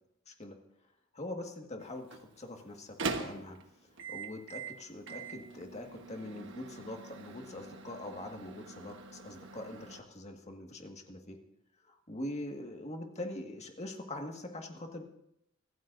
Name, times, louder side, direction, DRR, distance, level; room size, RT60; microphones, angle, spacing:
voice 1, 0.3-0.6 1.1-3.6 4.1-11.4 11.9-15.2, left 1 dB, 35° left, 3 dB, 1.8 m, -43 dB
Microwave oven, 1.8-10.0, right 4 dB, 65° right, 1.3 m, -43 dB
24.5 x 14.5 x 2.7 m, 0.79 s
head